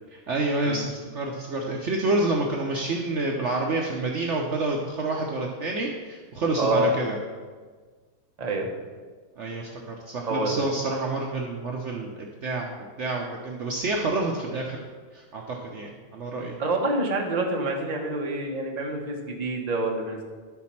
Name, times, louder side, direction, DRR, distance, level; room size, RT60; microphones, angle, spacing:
voice 1, 0.3-7.2 9.4-14.8 15.1-16.6, right 2 dB, 75° right, -1 dB, 0.6 m, -28 dB
voice 2, 6.6-6.9 8.4-8.7 10.3-10.6 16.6-20.2, right 2 dB, 35° right, 0 dB, 0.7 m, -27 dB
11.5 x 4.2 x 5.8 m, 1.5 s
omnidirectional pair, 2.3 m